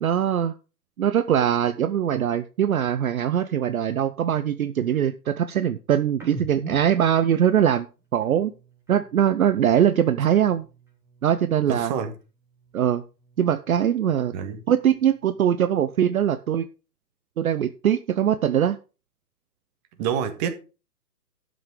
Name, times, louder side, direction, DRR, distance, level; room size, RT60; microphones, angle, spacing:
voice 1, 0.0-0.5 1.0-7.9 8.1-8.5 8.9-10.7 11.2-11.9 12.7-13.0 13.4-14.3 14.7-16.7 17.4-18.8, right 9 dB, 55° right, 0.8 m, -22 dB
sound 1, 6.1-9.7 10.0-11.9 12.1-14.0 14.4-16.2, right 2 dB, 5° right, 3.6 m, -46 dB
voice 2, 11.7-12.1 14.3-14.6 20.0-20.5, right 8 dB, 25° right, 1.7 m, -27 dB
12.0 x 6.2 x 5.0 m
hypercardioid pair, 140°, 50 cm